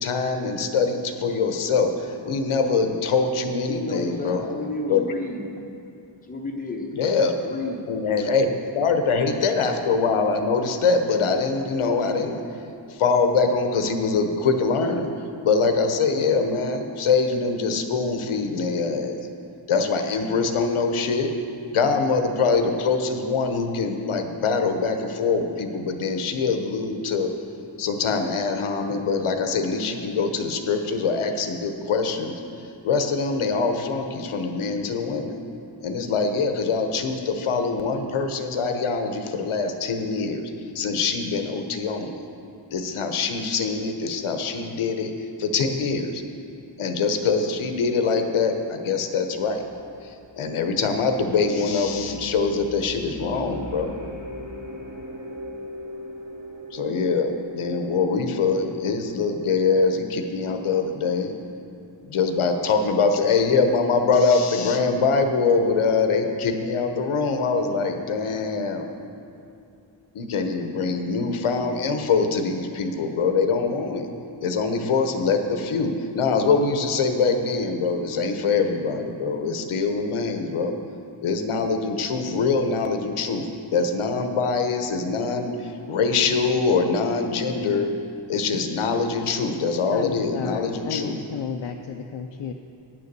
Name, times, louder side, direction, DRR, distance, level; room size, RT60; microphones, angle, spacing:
voice 1, 0.0-4.4 4.9-5.0 7.0-7.4 7.9-12.4 12.9-15.1 15.4-19.2 19.7-21.3 21.7-27.3 27.8-32.4 32.8-35.4 35.8-40.5 40.7-42.1 42.7-45.1 45.4-46.2 46.8-49.6 50.4-54.0 56.7-61.3 62.0-68.9 70.1-74.1 74.4-80.7 81.2-83.5 83.7-87.9 88.3-91.2, left 4 dB, 90° left, 6 dB, 0.9 m, -23 dB
voice 2, 3.7-5.6 6.2-6.9 7.4-7.9, left 2 dB, 15° left, 1 dB, 0.9 m, -31 dB
sound 1, 49.3-59.6, equal, 55° right, 2.2 m, -40 dB
voice 3, 89.9-92.5, left 6 dB, 65° left, 4 dB, 0.6 m, -32 dB
10.5 x 6.9 x 6.7 m, 2.7 s
wide cardioid pair, 135°, 48 cm